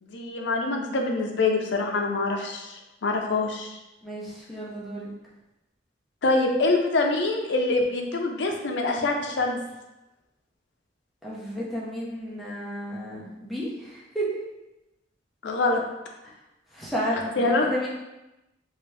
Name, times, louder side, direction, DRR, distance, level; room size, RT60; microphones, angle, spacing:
voice 1, 0.0-3.8 6.2-9.6 15.4-15.8 17.4-17.7, left 3 dB, 75° left, 2 dB, 0.6 m, -25 dB
voice 2, 4.0-5.1 11.2-14.4 16.2-16.3 16.7-17.9, equal, ahead, -6 dB, 0.7 m, -32 dB
3.4 x 2.8 x 3.2 m, 0.96 s
head